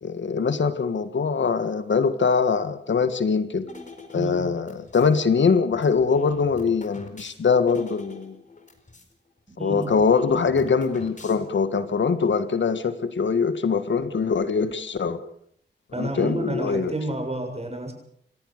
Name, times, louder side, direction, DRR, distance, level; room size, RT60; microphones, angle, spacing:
voice 1, 0.0-3.7 4.1-8.4 9.6-15.2 16.0-16.9, left 5 dB, 75° left, 11 dB, 1.7 m, -23 dB
sound 1, 3.7-5.1 5.7-9.1 9.4-9.5 9.7-11.7, left 3 dB, 40° left, 4.6 m, -45 dB
voice 2, 4.1-4.5 9.6-9.9 15.9-17.9, right 1 dB, 35° right, 4 dB, 7.4 m, -30 dB
28.5 x 15.0 x 6.7 m, 0.66 s
cardioid pair, 55°, 19 cm